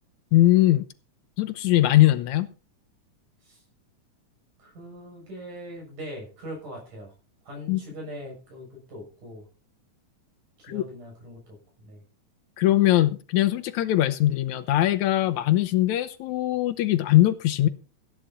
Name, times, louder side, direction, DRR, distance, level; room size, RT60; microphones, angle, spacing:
voice 1, 0.3-0.8 1.4-2.5 7.7-7.8 10.7-10.8 12.6-17.7, left 15 dB, 75° left, 2.1 m, -21 dB
voice 2, 4.6-7.1 7.4-9.5 10.6-12.0, equal, 85° right, 8.6 m, -41 dB
15.0 x 9.6 x 4.3 m
omnidirectional pair, 3.6 m